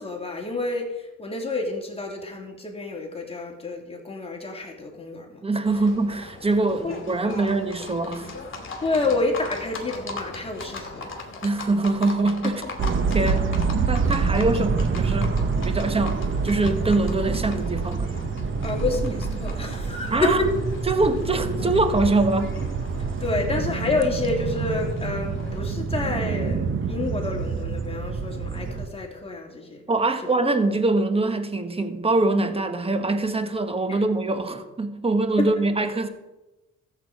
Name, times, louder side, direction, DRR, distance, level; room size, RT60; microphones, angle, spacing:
voice 1, 0.0-5.4 6.7-6.9 7.2-7.6 8.8-11.1 12.4-12.5 18.6-20.6 23.0-29.8 30.2-30.3 33.9-34.0 35.4-35.5, left 3 dB, 20° left, 0 dB, 3.0 m, -29 dB
voice 2, 5.4-8.3 11.4-12.6 13.1-18.1 20.1-20.4 20.9-22.6 29.9-36.1, right 2 dB, 20° right, 8 dB, 1.4 m, -24 dB
Livestock farm animals working animals, 5.7-25.6, left 3 dB, 40° left, 2.8 m, -39 dB
sound 1, 12.8-28.9, right 5 dB, 40° right, 1.0 m, -27 dB
14.0 x 8.1 x 5.0 m, 1.0 s
cardioid pair, 90°, 30 cm